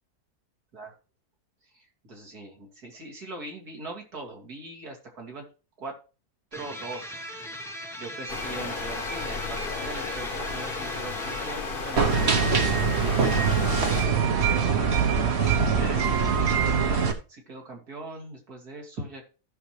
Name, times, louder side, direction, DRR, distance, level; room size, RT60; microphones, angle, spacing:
voice 1, 1.7-5.4 5.8-6.0 6.5-7.2 8.0-13.0 13.9-14.7 15.3-19.2, right 2 dB, 80° right, 0 dB, 3.1 m, -41 dB
sound 1, 6.5-11.6, equal, ahead, 0.7 m, -39 dB
sound 2, 8.3-14.1, left 4 dB, 40° left, 1.2 m, -34 dB
sound 3, 12.0-17.1, right 6 dB, 45° right, 1.3 m, -23 dB
15.5 x 6.0 x 3.3 m, 0.34 s
omnidirectional pair, 1.6 m